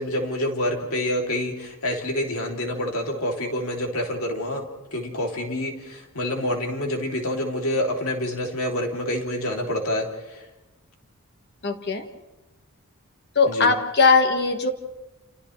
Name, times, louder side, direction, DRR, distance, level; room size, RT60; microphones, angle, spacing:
voice 1, 0.0-10.4 13.5-13.7, left 1 dB, 75° left, 1 dB, 3.0 m, -27 dB
voice 2, 11.6-12.1 13.3-14.7, left 4 dB, 50° left, 6 dB, 1.6 m, -19 dB
29.5 x 28.5 x 3.3 m, 1.1 s
head